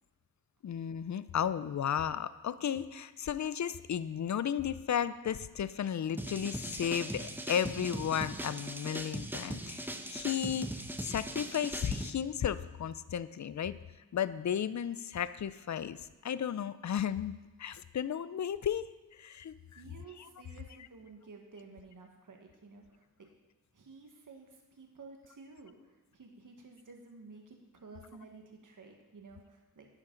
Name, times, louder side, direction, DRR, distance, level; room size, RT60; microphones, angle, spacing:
voice 1, 0.6-13.7 14.1-18.9 19.1-19.8, left 9 dB, 50° left, 15 dB, 0.5 m, -34 dB
sound 1, 6.2-12.1, right 1 dB, 5° right, 0.9 m, -39 dB
voice 2, 19.7-23.1 23.7-29.9, right 4 dB, 55° right, 2 dB, 1.5 m, -53 dB
11.0 x 9.9 x 3.9 m, 1.2 s
cardioid pair, 60°, 38 cm